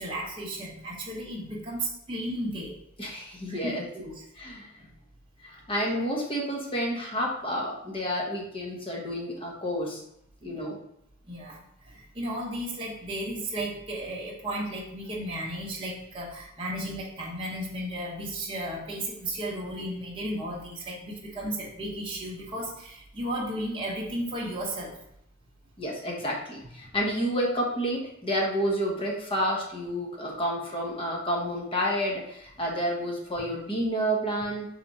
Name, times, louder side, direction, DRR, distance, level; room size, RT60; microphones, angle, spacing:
voice 1, 0.0-2.7 3.5-3.7 4.0-4.2 4.8-4.9 10.4-10.6 11.3-24.9 26.8-26.9 33.4-33.5, right 1 dB, 25° right, -5 dB, 0.9 m, -34 dB
voice 2, 3.0-3.8 4.4-4.7 5.4-10.0 10.4-10.8 25.8-34.7, equal, 25° left, -2 dB, 1.0 m, -30 dB
3.6 x 3.4 x 4.0 m, 0.76 s
head